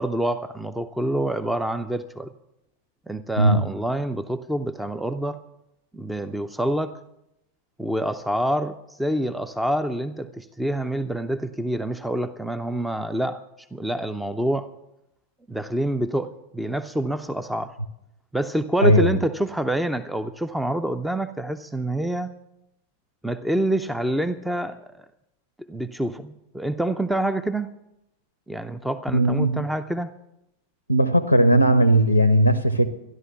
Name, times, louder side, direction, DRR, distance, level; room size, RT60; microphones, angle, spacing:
voice 1, 0.0-2.3 3.1-5.4 5.9-7.0 7.8-13.4 13.7-14.7 15.5-17.8 18.3-22.3 23.2-24.9 25.7-27.7 28.5-30.1, right 1 dB, 5° right, 11 dB, 0.6 m, -27 dB
voice 2, 18.8-19.2 29.1-29.6 30.9-32.9, right 1 dB, 90° left, 12 dB, 0.8 m, -18 dB
13.5 x 11.0 x 7.1 m, 0.85 s
figure-of-eight pair, 90°, 0 cm